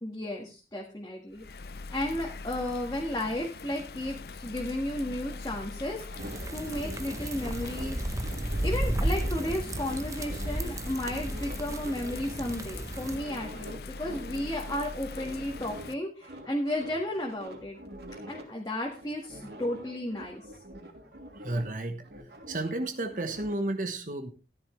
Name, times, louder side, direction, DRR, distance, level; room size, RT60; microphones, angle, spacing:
voice 1, 0.0-1.4 1.9-6.2 6.5-8.0 8.6-17.8 18.3-20.4, left 1 dB, 20° left, -1 dB, 1.8 m, -33 dB
Bird vocalization bird call bird song / Rain, 1.3-15.9, left 3 dB, 60° left, 0.6 m, -42 dB
sound 1, 5.8-10.7 11.0-15.9 16.2-18.4 18.8-21.8 22.0-23.6, equal, 70° right, 3.1 m, -45 dB
sound 2, 6.2-13.2, right 1 dB, 20° right, 0.9 m, -33 dB
voice 2, 21.4-22.0 22.5-24.3, right 2 dB, 45° right, 6 dB, 1.2 m, -32 dB
14.0 x 11.0 x 3.3 m, 0.31 s
head